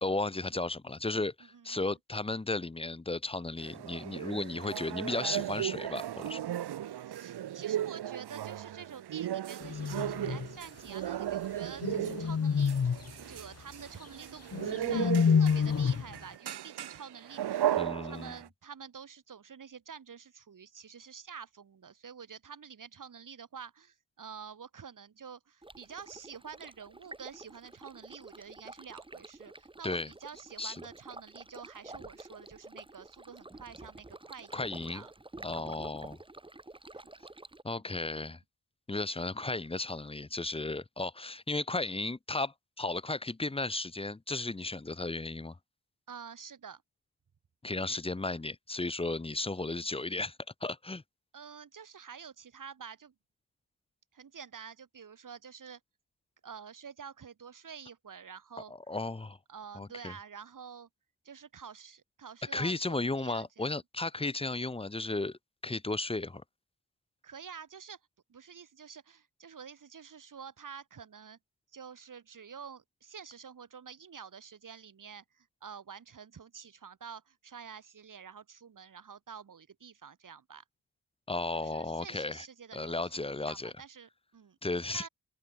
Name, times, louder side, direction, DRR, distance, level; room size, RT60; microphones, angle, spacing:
voice 1, 0.0-6.4 17.8-18.3 29.8-30.1 30.6-30.8 34.5-35.0 35.4-36.2 37.6-38.4 38.9-45.6 47.6-50.4 50.6-51.0 58.7-59.4 59.7-60.1 62.5-66.4 81.3-82.5 82.7-83.7 84.6-85.1, left 2 dB, 15° left, 1.1 m, -34 dB
voice 2, 1.4-1.9 7.0-12.8 13.3-17.7 18.0-35.1 35.6-35.9 46.1-46.8 51.3-53.1 54.1-55.8 56.4-58.7 59.5-60.9 61.2-63.7 67.2-68.0 68.3-71.4 71.7-80.6 81.6-84.6 84.9-85.1, right 7 dB, 55° right, 6.1 m, -48 dB
sound 1, 3.6-18.5, right 11 dB, 85° right, 1.2 m, -36 dB
sound 2, 9.6-10.5 11.8-13.1 14.5-16.1, left 6 dB, 40° left, 1.5 m, -28 dB
Stream, 25.6-37.6, right 2 dB, 15° right, 2.5 m, -50 dB
wide cardioid pair, 140°, 38 cm